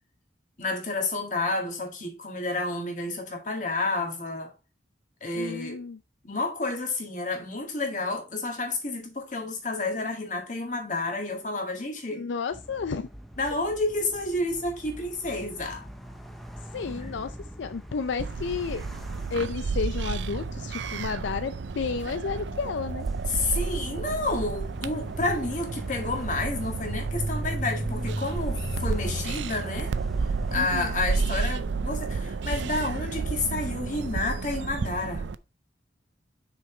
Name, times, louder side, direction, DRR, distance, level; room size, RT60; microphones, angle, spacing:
voice 1, 0.6-4.5 5.2-5.8 6.2-12.3 13.4-15.8 17.0-17.1 23.3-29.9 30.2-35.3, left 2 dB, 40° left, 1.9 m, -30 dB
voice 2, 5.4-6.0 12.1-13.1 16.7-18.8 19.3-23.1 30.6-30.9, left 5 dB, 80° left, 0.4 m, -32 dB
sound 1, 12.5-31.0, equal, ahead, 0.6 m, -39 dB
sound 2, 18.2-35.4, right 4 dB, 80° right, 0.4 m, -31 dB
6.2 x 4.9 x 4.3 m
head